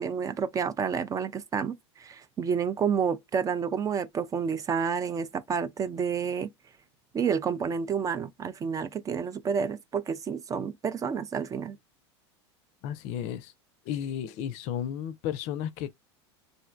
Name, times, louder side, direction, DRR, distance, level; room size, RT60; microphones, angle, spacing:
voice 1, 0.0-6.5 7.1-11.8, right 6 dB, 25° right, 0.4 m, -29 dB
voice 2, 12.8-13.5 13.9-16.0, left 9 dB, 50° left, 0.5 m, -33 dB
3.2 x 2.6 x 2.4 m
hypercardioid pair, 90°, 14 cm